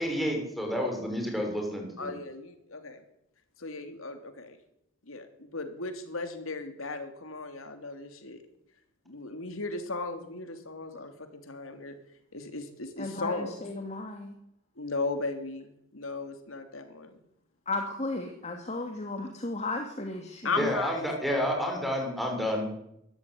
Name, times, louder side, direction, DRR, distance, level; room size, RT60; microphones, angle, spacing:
voice 1, 0.0-2.1 20.6-22.7, equal, ahead, 1 dB, 6.4 m, -30 dB
voice 2, 2.0-3.0 3.6-4.6 5.1-8.4 9.1-12.0 12.3-13.6 14.8-17.2 20.4-21.9, left 3 dB, 85° left, 7 dB, 3.2 m, -36 dB
voice 3, 13.0-14.3 17.7-20.5, left 2 dB, 35° left, 4 dB, 2.5 m, -35 dB
23.0 x 14.0 x 9.9 m, 0.79 s
head